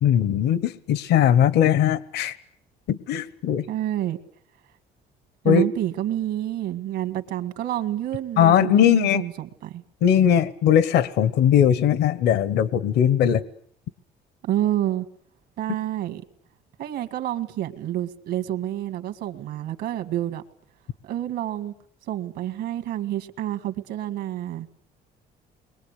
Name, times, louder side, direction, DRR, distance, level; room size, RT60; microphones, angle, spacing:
voice 1, 0.0-2.4 2.9-3.7 5.4-5.7 8.4-9.2 10.0-13.4, left 9 dB, 75° left, 17 dB, 1.1 m, -19 dB
voice 2, 3.7-4.2 5.4-9.8 14.4-15.1 15.6-16.2 16.8-20.4 21.0-21.7 22.1-24.7, right 12 dB, 80° right, 6 dB, 1.9 m, -28 dB
30.0 x 22.0 x 8.3 m, 0.65 s
cardioid pair, 110°, 17 cm